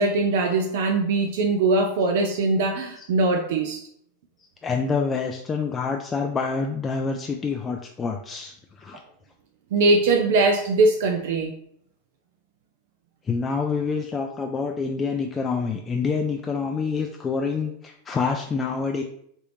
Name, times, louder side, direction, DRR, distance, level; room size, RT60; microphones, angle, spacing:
voice 1, 0.0-3.8 9.7-11.5, right 3 dB, 70° right, 3 dB, 0.4 m, -21 dB
voice 2, 4.6-9.0 13.3-19.0, left 5 dB, 25° left, 3 dB, 0.3 m, -27 dB
3.3 x 2.5 x 3.0 m, 0.69 s
hypercardioid pair, 105°, 0 cm